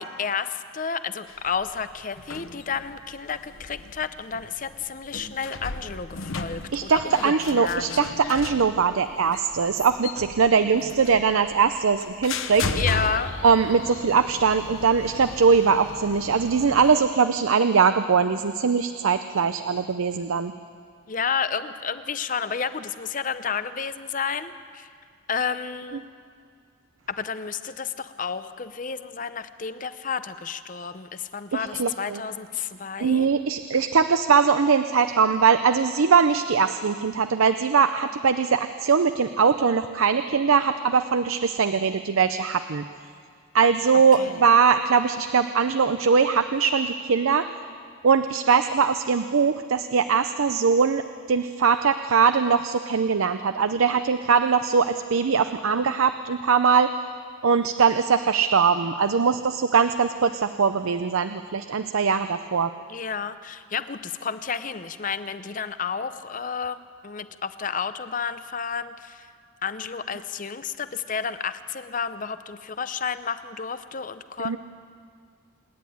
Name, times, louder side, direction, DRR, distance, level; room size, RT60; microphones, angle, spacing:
voice 1, 0.0-7.8 12.7-13.3 21.1-24.9 25.3-26.1 27.1-33.3 44.2-44.4 62.9-69.3 69.6-74.6, left 6 dB, 40° left, 12 dB, 0.7 m, -31 dB
sound 1, 1.3-17.0, left 4 dB, 75° left, 1.0 m, -36 dB
voice 2, 6.7-12.7 13.4-20.5 31.5-32.2 33.0-42.9 43.5-47.5 48.0-56.9 57.4-62.7 74.4-74.6, right 5 dB, 80° right, 10 dB, 0.6 m, -21 dB
27.0 x 10.5 x 9.4 m, 2.1 s
head